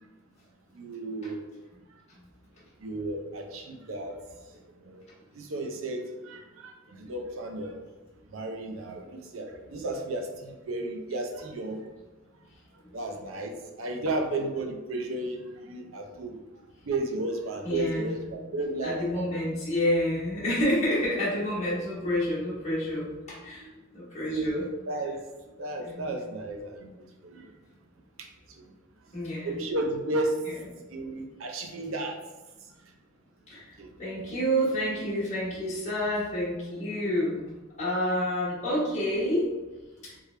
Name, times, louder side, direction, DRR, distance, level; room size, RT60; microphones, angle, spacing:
voice 1, 0.7-1.6 2.8-4.2 4.8-5.0 5.3-7.8 8.3-11.8 12.9-15.4 15.6-16.3 16.9-19.4 21.7-21.8 24.3-25.2 25.6-26.9 27.2-27.4 28.2-28.3 29.4-30.4 30.9-32.2 33.8-33.9, right 2 dB, 75° right, 3 dB, 0.6 m, -33 dB
voice 2, 17.6-18.3 18.8-23.7 23.9-24.6 25.8-26.1 29.1-29.5 30.5-30.6 33.5-37.4 37.8-39.5 40.0-40.1, equal, 35° left, -9 dB, 1.3 m, -29 dB
3.4 x 3.3 x 3.2 m, 1.2 s
head